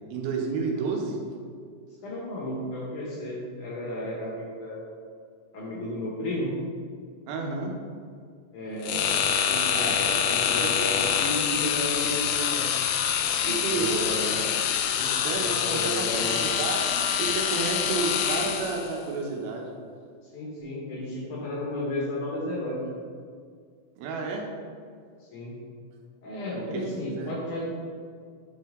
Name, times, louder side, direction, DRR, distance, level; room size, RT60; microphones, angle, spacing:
voice 1, 0.1-1.2 7.3-7.8 9.7-10.0 13.5-14.2 15.2-19.7 24.0-24.5 26.5-27.4, right 4 dB, 85° right, 1 dB, 2.8 m, -31 dB
voice 2, 2.0-4.8 5.5-6.5 8.5-12.7 13.4-14.3 14.9-16.4 20.3-22.9 25.3-25.5 26.2-27.6, left 1 dB, 65° left, -4 dB, 2.4 m, -33 dB
sound 1, 8.8-18.9, left 8 dB, 80° left, 2.3 m, -26 dB
8.5 x 4.6 x 3.6 m, 2.1 s
omnidirectional pair, 4.3 m